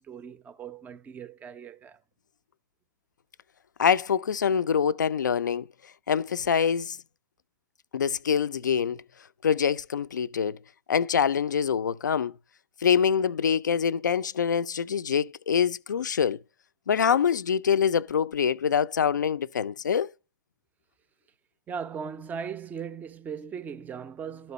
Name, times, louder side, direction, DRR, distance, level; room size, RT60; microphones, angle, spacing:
voice 1, 0.0-2.0 21.7-24.5, right 6 dB, 15° right, 0.4 m, -38 dB
voice 2, 3.8-5.7 6.1-7.0 7.9-9.0 9.4-10.6 10.9-12.3 12.8-16.4 16.9-20.1, left 7 dB, 75° left, 0.4 m, -25 dB
12.0 x 4.2 x 4.0 m
figure-of-eight pair, 105°, 10 cm